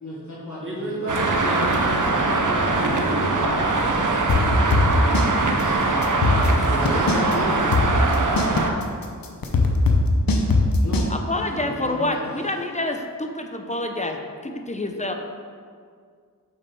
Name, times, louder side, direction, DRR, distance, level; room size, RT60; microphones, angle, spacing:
voice 1, 0.0-1.6 2.8-3.8 4.3-6.0 6.7-7.8 10.8-11.1 11.5-12.4, equal, 50° left, -8 dB, 1.7 m, -33 dB
voice 2, 0.6-3.6, right 1 dB, 35° right, -4 dB, 1.7 m, -31 dB
Traffic noise roadway noise, 1.1-8.7, right 3 dB, 60° right, 0.8 m, -22 dB
sound 1, 4.3-5.3 5.6-5.7 6.0-7.3 7.7-11.1, left 3 dB, 70° left, 0.8 m, -20 dB
voice 3, 11.1-15.1, left 1 dB, 20° left, 4 dB, 0.7 m, -27 dB
5.7 x 5.0 x 4.8 m, 2.1 s
cardioid pair, 40°, 36 cm